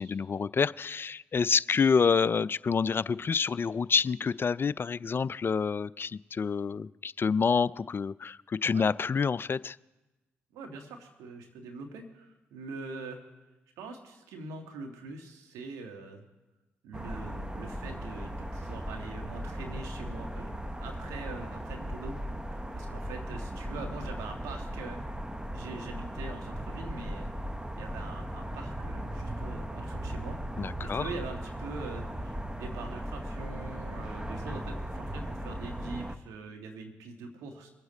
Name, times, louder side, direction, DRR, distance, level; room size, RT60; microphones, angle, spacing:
voice 1, 0.0-9.8 30.6-31.1, left 5 dB, 45° left, 20 dB, 0.3 m, -28 dB
voice 2, 10.5-13.2 13.8-16.2 16.8-22.2 22.7-25.0 25.5-27.3 27.7-30.4 30.8-37.7, right 3 dB, 85° right, 3 dB, 1.6 m, -43 dB
sound 1, 16.9-36.2, equal, 15° right, 1.0 m, -37 dB
23.5 x 7.9 x 4.1 m, 1.1 s
hypercardioid pair, 40°, 5 cm